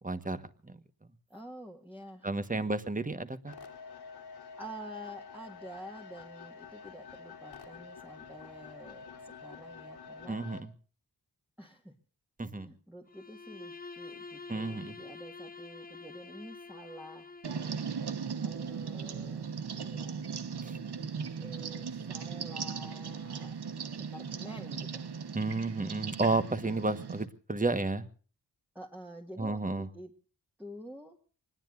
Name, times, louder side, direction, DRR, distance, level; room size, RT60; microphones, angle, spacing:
voice 1, 0.0-0.4 2.2-3.5 10.3-10.7 12.4-12.7 14.5-15.0 20.6-20.8 25.3-28.0 29.4-29.9, right 2 dB, 20° right, 11 dB, 1.4 m, -32 dB
voice 2, 1.3-2.6 3.8-4.2 4.6-10.4 11.6-11.9 12.4-17.3 18.4-20.2 21.3-23.6 24.1-25.0 28.8-30.1 30.6-31.2, equal, 5° right, -1 dB, 1.8 m, -48 dB
sound 1, 3.5-10.6, left 5 dB, 85° left, 3.2 m, -48 dB
Bowed string instrument, 13.1-18.0, left 4 dB, 25° left, 0.9 m, -47 dB
sound 2, 17.4-27.3, right 6 dB, 85° right, 1.2 m, -38 dB
25.0 x 20.5 x 2.6 m, 0.40 s
wide cardioid pair, 100°, 39 cm